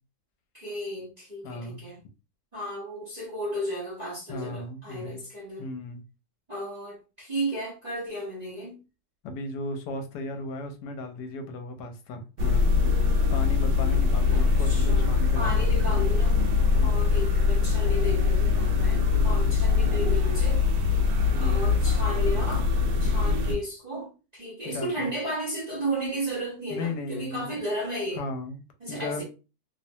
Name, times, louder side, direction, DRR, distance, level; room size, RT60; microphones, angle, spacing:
voice 1, 0.5-2.0 2.5-5.7 6.5-8.8 14.3-16.4 16.8-20.7 21.4-22.7 23.0-28.2 28.8-29.2, right 1 dB, 35° right, 0.7 m, -34 dB
voice 2, 1.4-1.8 4.3-5.2 5.6-6.0 9.2-12.7 13.3-15.7 16.8-17.1 19.2-19.6 21.3-21.7 24.6-25.1 26.7-27.5 28.2-28.6 28.9-29.2, left 2 dB, 80° left, 1.2 m, -36 dB
sound 1, 12.4-23.5, left 5 dB, 90° right, 1.2 m, -22 dB
2.9 x 2.1 x 2.7 m
omnidirectional pair, 1.8 m